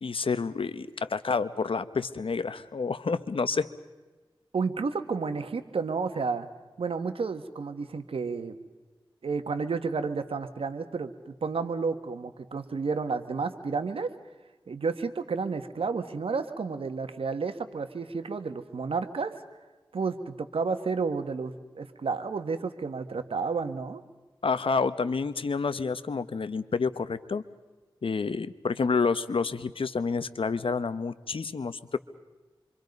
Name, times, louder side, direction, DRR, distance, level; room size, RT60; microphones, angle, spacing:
voice 1, 0.0-3.7 24.4-27.4 28.0-32.0, left 4 dB, 75° left, 13 dB, 1.0 m, -29 dB
voice 2, 4.5-6.5 6.8-8.6 9.2-11.1 11.4-14.1 14.7-19.3 19.9-24.0, right 4 dB, 90° right, 9 dB, 1.4 m, -31 dB
27.0 x 25.0 x 5.3 m, 1.2 s
cardioid pair, 50°, 9 cm